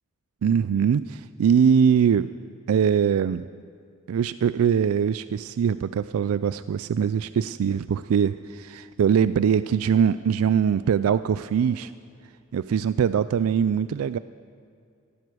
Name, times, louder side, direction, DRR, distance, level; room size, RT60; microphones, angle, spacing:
voice 1, 0.4-2.3 2.7-3.5 4.1-11.9 12.5-14.2, right 7 dB, 75° right, 15 dB, 0.3 m, -22 dB
15.5 x 14.0 x 6.3 m, 2.4 s
head